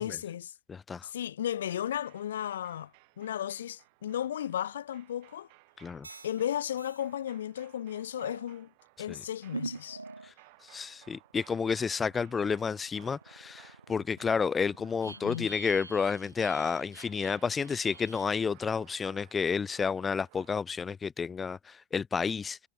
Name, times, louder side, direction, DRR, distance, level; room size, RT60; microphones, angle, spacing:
voice 1, 0.0-0.5 1.0-2.9 3.2-5.5 6.2-8.7 9.0-10.0 15.1-15.5, left 10 dB, 60° left, 1.7 m, -34 dB
voice 2, 0.7-1.1 5.8-6.1 9.0-9.2 10.2-10.3 10.6-22.7, left 5 dB, 15° left, 0.4 m, -31 dB
sound 1, 1.7-20.5, right 31 dB, 45° right, 5.1 m, -60 dB
sound 2, 6.0-6.4 6.8-7.1 8.1-8.5 9.5-10.3 10.8-18.4, right 3 dB, 80° right, 1.0 m, -45 dB
figure-of-eight pair, 90°, 0 cm